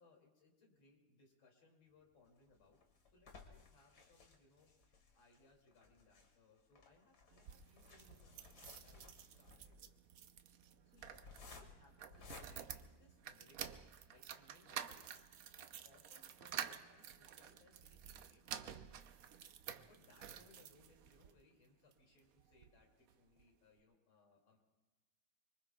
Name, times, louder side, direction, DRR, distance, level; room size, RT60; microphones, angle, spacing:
voice 1, 0.0-9.9 10.8-19.0 19.7-24.6, left 3 dB, 70° left, 0 dB, 3.3 m, -70 dB
sound 1, 2.3-13.6 14.2-14.3 14.6-14.7 15.0-15.2, left 4 dB, 55° left, 2.1 m, -60 dB
sound 2, 7.3-21.3 21.9-22.8 23.1-23.2 23.4-23.5, right 9 dB, 80° right, 0.7 m, -51 dB
25.0 x 24.0 x 2.3 m, 1.1 s
omnidirectional pair, 2.2 m